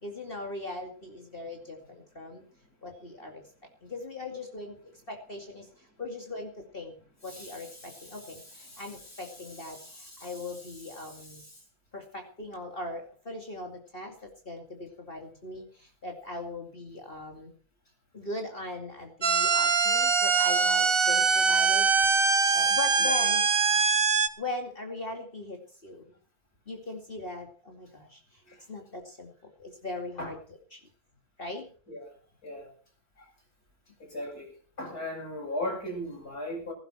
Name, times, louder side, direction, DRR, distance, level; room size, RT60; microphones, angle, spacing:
voice 1, 0.0-2.4 2.8-3.4 3.8-7.0 7.2-11.4 11.9-17.5 18.1-21.9 22.5-23.4 24.4-26.1 26.7-28.4 28.7-29.3 29.6-30.4 30.7-30.8 31.4-31.7, left 2 dB, 35° left, 2 dB, 2.6 m, -39 dB
voice 2, 7.3-10.6 11.0-11.6 23.0-23.1 28.5-28.6 30.2-30.3 31.9-32.1 32.4-32.7 33.2-33.3 34.0-34.5 34.8-36.7, left 1 dB, 80° left, 0 dB, 8.7 m, -39 dB
sound 1, 19.2-24.3, right 5 dB, 40° right, 1.3 m, -23 dB
18.0 x 15.5 x 4.4 m, 0.42 s
omnidirectional pair, 1.6 m